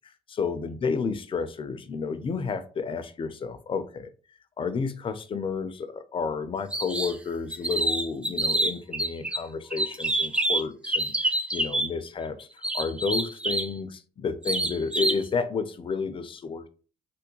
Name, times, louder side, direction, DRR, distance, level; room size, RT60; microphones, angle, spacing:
voice 1, 0.3-4.1 4.6-16.7, left 5 dB, 40° left, 10 dB, 0.5 m, -31 dB
sound 1, 6.7-7.2 7.5-9.4 9.7-11.9 12.6-13.7 14.4-15.2, right 1 dB, 10° right, 0.5 m, -27 dB
3.4 x 2.2 x 3.0 m, 0.37 s
supercardioid pair, 65°, 14 cm